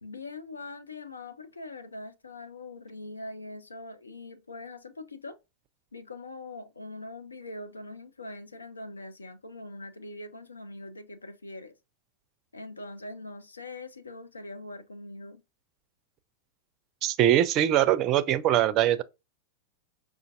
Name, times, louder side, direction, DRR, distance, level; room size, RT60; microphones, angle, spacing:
voice 1, 0.0-5.4 5.9-11.7 12.5-15.4, left 2 dB, 75° left, 0.5 m, -42 dB
voice 2, 17.0-19.0, right 12 dB, 35° right, 0.4 m, -22 dB
5.0 x 2.5 x 2.4 m
figure-of-eight pair, 90°, 0 cm